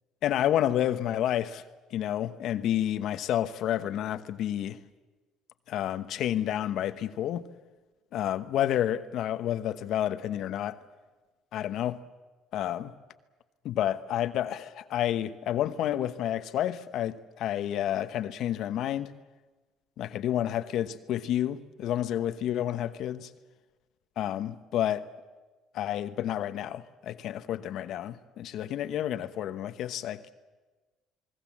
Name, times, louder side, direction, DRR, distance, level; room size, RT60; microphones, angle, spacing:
voice 1, 0.2-1.6 1.9-4.8 5.7-7.5 8.1-10.8 11.5-12.0 12.5-12.9 13.6-19.1 20.0-23.3 24.2-25.1 25.7-30.3, left 11 dB, 65° left, 1.1 m, -30 dB
28.5 x 20.5 x 7.4 m
cardioid pair, 100°, 0 cm